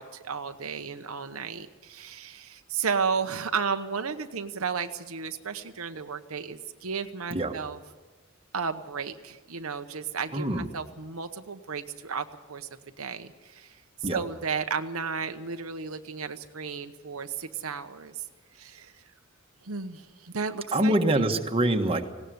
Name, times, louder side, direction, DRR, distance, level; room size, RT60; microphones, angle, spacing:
voice 1, 0.0-7.8 8.5-12.7 13.0-13.8 14.1-18.2 18.5-18.9 19.6-21.3, right 5 dB, 85° right, 7 dB, 1.1 m, -33 dB
voice 2, 10.3-10.7 14.0-14.2 20.7-22.0, right 1 dB, 25° right, 4 dB, 1.5 m, -25 dB
19.5 x 17.5 x 8.1 m, 1.2 s
head